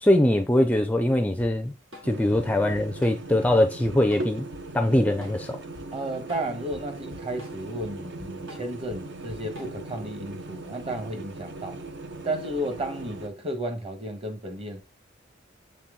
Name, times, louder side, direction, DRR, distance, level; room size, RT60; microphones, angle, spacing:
voice 1, 0.0-1.7 2.0-4.5 4.7-5.6, left 1 dB, 10° left, 0.4 m, -22 dB
Drum kit / Drum, 1.4-10.0, left 1 dB, 80° right, 3.1 m, -47 dB
sound 1, 2.0-13.3, right 2 dB, 65° right, 1.0 m, -39 dB
voice 2, 5.9-11.8 12.2-14.8, right 1 dB, 30° right, 1.3 m, -33 dB
7.2 x 4.2 x 3.8 m
head